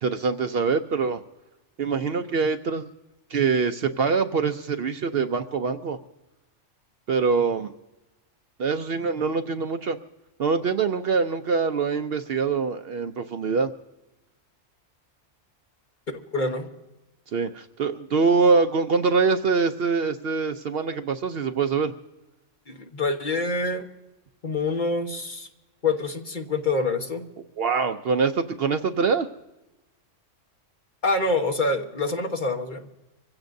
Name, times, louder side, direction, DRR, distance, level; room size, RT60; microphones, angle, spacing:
voice 1, 0.0-1.2 1.8-2.9 3.3-6.0 7.1-7.7 8.6-10.0 10.4-13.7 17.3-21.9 27.6-29.3, right 5 dB, 60° right, 9 dB, 0.8 m, -24 dB
voice 2, 16.1-16.7 22.7-23.9 24.4-25.5 25.8-27.2 31.0-32.9, left 3 dB, 40° left, 4 dB, 1.3 m, -26 dB
25.0 x 16.0 x 2.6 m, 1.0 s
omnidirectional pair, 1.3 m